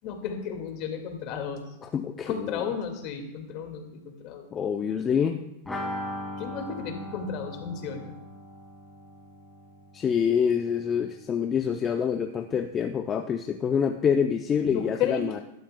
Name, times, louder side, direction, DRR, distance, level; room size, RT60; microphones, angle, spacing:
voice 1, 0.0-1.7 2.3-4.5 6.4-8.2 14.6-15.4, left 7 dB, 50° left, 5 dB, 1.9 m, -33 dB
voice 2, 1.9-2.6 4.5-5.4 9.9-15.4, left 7 dB, 25° left, 6 dB, 0.5 m, -26 dB
sound 1, 5.7-11.3 11.5-11.6 11.9-12.0, left 1 dB, 5° left, 2.1 m, -39 dB
14.0 x 12.0 x 2.2 m, 0.89 s
hypercardioid pair, 130°, 0 cm